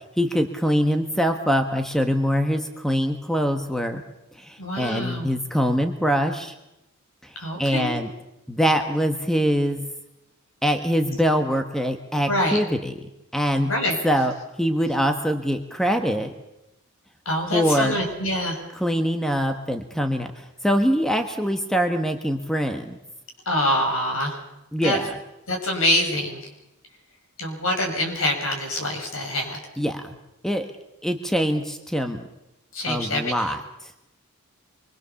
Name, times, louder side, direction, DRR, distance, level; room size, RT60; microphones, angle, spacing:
voice 1, 0.2-4.0 4.4-6.5 7.2-8.1 8.5-9.8 10.6-12.9 13.3-13.7 14.0-14.3 14.6-16.3 17.5-18.0 18.8-23.0 24.7-25.1 29.8-30.2 30.4-30.7 31.0-32.2 32.9-33.9, equal, ahead, 6 dB, 1.3 m, -23 dB
voice 2, 4.6-5.3 7.3-8.0 12.3-12.6 13.6-14.0 17.2-18.6 23.4-24.4 24.8-25.0 25.5-26.4 27.4-29.6 32.7-33.5, left 1 dB, 65° left, 2 dB, 6.3 m, -25 dB
25.5 x 22.5 x 7.1 m, 0.91 s
head